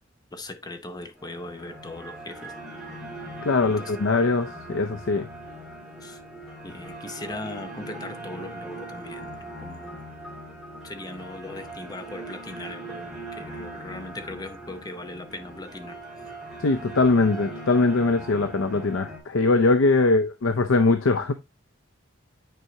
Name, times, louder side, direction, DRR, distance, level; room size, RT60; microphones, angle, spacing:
voice 1, 0.3-2.5 3.6-4.0 6.0-6.2 6.6-10.0 10.8-16.0 20.0-20.1, left 2 dB, 20° left, 0.7 m, -39 dB
sound 1, 1.2-19.2, right 1 dB, ahead, 2.8 m, -40 dB
voice 2, 3.4-5.3 16.6-21.3, left 3 dB, 75° left, 0.6 m, -21 dB
9.3 x 4.6 x 2.7 m
head